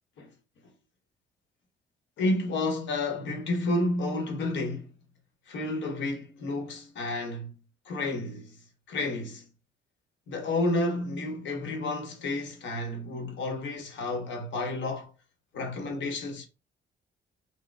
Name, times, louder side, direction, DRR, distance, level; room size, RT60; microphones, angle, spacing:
voice 1, 2.2-4.9 5.5-7.5 7.9-8.5 8.9-9.4 10.3-15.1 15.5-16.5, left 2 dB, 85° left, 0.9 m, -30 dB
3.9 x 2.0 x 2.2 m
cardioid pair, 105°, 19 cm